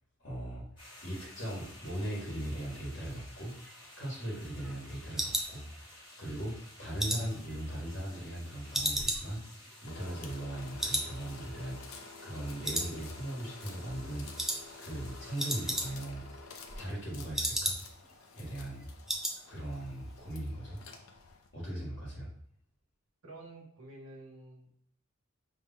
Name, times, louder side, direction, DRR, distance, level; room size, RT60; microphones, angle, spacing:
voice 1, 0.2-0.6 1.0-3.5 3.8-6.5 6.8-14.5 14.8-16.2 16.8-17.8 18.4-18.8 19.5-20.8 21.5-22.3, right 1 dB, 60° left, -5 dB, 1.5 m, -39 dB
sound 1, 0.8-15.9, left 1 dB, 20° left, 1.4 m, -54 dB
sound 2, 3.5-6.2 6.6-8.4 8.7-10.5 10.8-11.1 11.4-11.5 12.0-12.4 12.6-13.4 13.7-14.0 14.4-14.6 14.9-15.0 15.2-16.2 16.5-18.1 18.4-18.5 18.8-19.4 19.7-20.0 20.2-20.3, right 1 dB, ahead, 0.4 m, -35 dB
sound 3, 9.8-21.5, left 4 dB, 85° left, 0.6 m, -51 dB
voice 2, 23.2-24.8, right 2 dB, 85° right, -1 dB, 1.3 m, -50 dB
5.5 x 3.2 x 2.2 m, 0.67 s
head